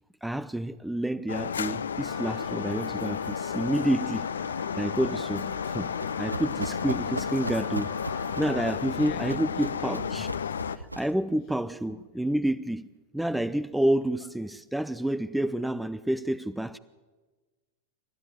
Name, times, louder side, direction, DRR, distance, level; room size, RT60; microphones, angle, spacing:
voice 1, 0.2-4.3 4.7-10.3 10.7-12.9 13.1-16.8, right 1 dB, 5° right, 0.6 m, -29 dB
sound 1, 1.3-10.8, left 7 dB, 70° left, 0.7 m, -32 dB
Wind instrument woodwind instrument, 2.0-8.5, right 7 dB, 40° right, 1.8 m, -49 dB
Run, 5.6-11.2, right 1 dB, 85° right, 0.9 m, -39 dB
voice 2, 8.9-10.1 10.4-10.5 11.9-12.0, left 15 dB, 40° left, 1.3 m, -47 dB
28.5 x 13.0 x 9.2 m
figure-of-eight pair, 90°, 0 cm